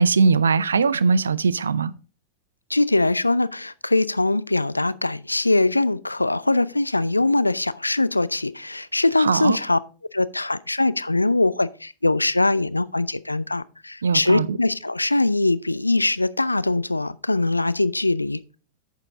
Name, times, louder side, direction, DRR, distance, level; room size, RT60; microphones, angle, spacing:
voice 1, 0.0-1.9 9.2-9.6 14.0-14.6, right 4 dB, 70° right, 0.4 m, -20 dB
voice 2, 2.7-9.8 10.1-18.4, left 2 dB, 85° left, 0.4 m, -22 dB
9.6 x 6.6 x 3.8 m
figure-of-eight pair, 90°, 0 cm